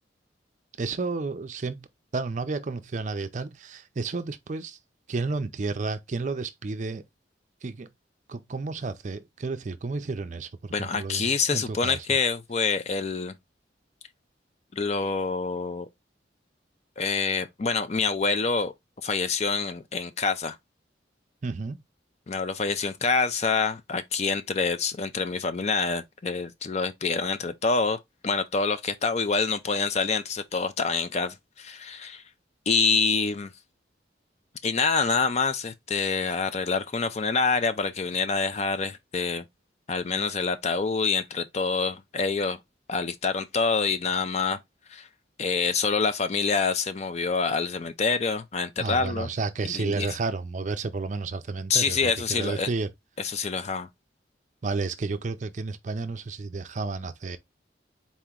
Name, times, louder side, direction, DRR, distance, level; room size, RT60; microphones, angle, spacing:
voice 1, 0.8-1.9 2.1-4.8 5.1-7.0 7.6-7.9 8.3-11.2 11.5-12.2 21.4-21.8 48.8-52.9 54.6-57.4, right 3 dB, 40° right, 0.4 m, -31 dB
voice 2, 10.7-13.3 14.7-15.9 17.0-18.7 19.0-20.6 22.3-28.0 28.2-32.2 32.7-33.5 34.6-39.4 39.9-42.6 42.9-44.6 44.9-45.1 45.4-49.3 49.7-50.1 51.7-52.7 53.2-53.9, left 4 dB, 35° left, 0.4 m, -26 dB
4.2 x 2.9 x 3.6 m
head